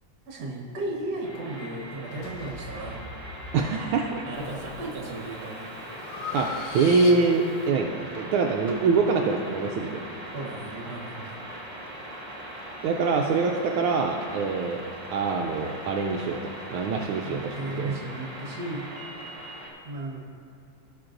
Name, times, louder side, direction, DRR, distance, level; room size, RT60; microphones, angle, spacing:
voice 1, 0.3-3.0 4.3-5.5 10.3-11.4 17.2-18.9 19.8-20.2, right 2 dB, 50° right, -1 dB, 1.7 m, -35 dB
sound 1, 1.2-19.7, right 1 dB, 30° right, 0.6 m, -40 dB
sound 2, 2.2-4.6, left 2 dB, 85° left, 2.0 m, -43 dB
voice 2, 3.5-4.2 6.3-6.5 6.7-10.0 12.8-14.8 15.1-16.4 16.7-18.0, right 4 dB, 80° right, 1 dB, 1.4 m, -24 dB
Breathing, 4.3-4.8 5.3-7.6, left 4 dB, 65° left, 1.3 m, -37 dB
17.0 x 5.9 x 2.5 m, 2.6 s
omnidirectional pair, 2.4 m